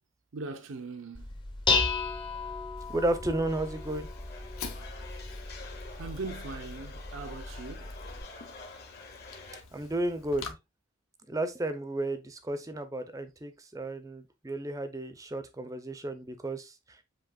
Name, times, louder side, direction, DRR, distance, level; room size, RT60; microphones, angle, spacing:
voice 1, 0.3-1.3 6.0-7.9, right 3 dB, 70° right, 0.6 m, -40 dB
Dishes pots and pans, 1.1-8.2, left 4 dB, 20° left, 0.7 m, -34 dB
Fire, 2.8-10.5, left 5 dB, 85° left, 0.9 m, -48 dB
voice 2, 2.9-4.1 9.7-10.6 11.3-17.0, right 1 dB, 15° right, 0.5 m, -33 dB
sound 1, 3.5-9.6, left 3 dB, 50° left, 1.2 m, -48 dB
7.6 x 2.9 x 2.3 m
head